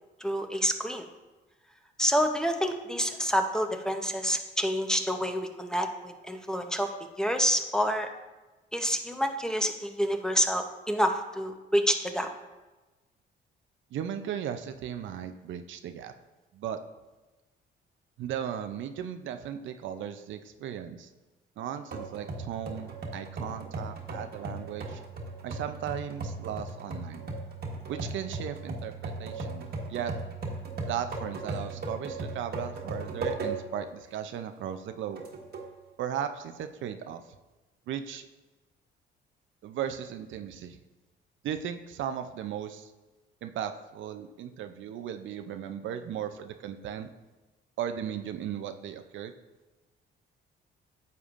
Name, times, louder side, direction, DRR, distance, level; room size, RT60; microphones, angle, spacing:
voice 1, 0.2-1.1 2.0-6.9 7.2-8.1 8.7-12.3, equal, 5° left, 5 dB, 0.7 m, -28 dB
voice 2, 13.9-16.1 16.5-16.8 18.2-21.1 21.6-25.0 25.4-27.3 27.9-30.1 30.9-35.2 36.0-37.2 37.9-38.2 39.6-40.8 41.4-42.9 43.4-47.1 47.8-49.3, right 9 dB, 75° right, 8 dB, 0.6 m, -36 dB
sound 1, 21.9-33.8 34.3-34.4 35.2-35.7, right 3 dB, 55° right, 1.4 m, -37 dB
9.4 x 6.9 x 2.5 m, 1.1 s
cardioid pair, 90°, 20 cm